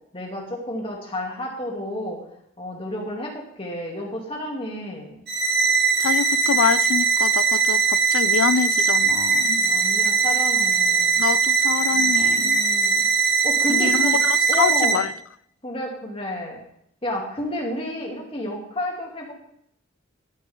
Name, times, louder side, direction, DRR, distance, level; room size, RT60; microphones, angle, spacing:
voice 1, 0.1-2.2 2.6-5.2 9.6-11.2 11.9-13.0 13.4-14.2 14.5-15.0 15.6-16.6 17.0-19.3, left 1 dB, 30° left, 2.8 m, -31 dB
sound 1, 5.3-14.9, right 5 dB, 55° right, 2.5 m, -20 dB
voice 2, 6.0-9.6 11.2-12.6 13.7-15.1, left 7 dB, 70° left, 0.4 m, -25 dB
12.0 x 11.5 x 3.8 m
head